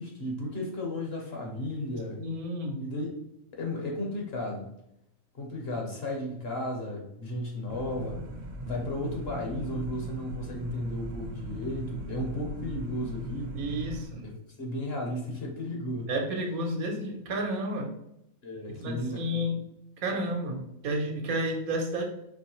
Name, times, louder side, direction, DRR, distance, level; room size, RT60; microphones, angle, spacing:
voice 1, 0.0-2.2 2.8-3.1 3.5-4.7 5.3-8.2 8.6-13.6 13.9-16.1 18.4-19.4, left 1 dB, 50° left, 1 dB, 0.9 m, -34 dB
voice 2, 2.2-2.8 13.5-14.3 16.1-17.9 18.8-19.6 20.0-22.1, right 1 dB, 80° right, 2 dB, 1.3 m, -31 dB
sound 1, 7.7-14.0, right 1 dB, 55° right, 0.8 m, -39 dB
4.6 x 3.1 x 3.0 m, 0.79 s
omnidirectional pair, 1.5 m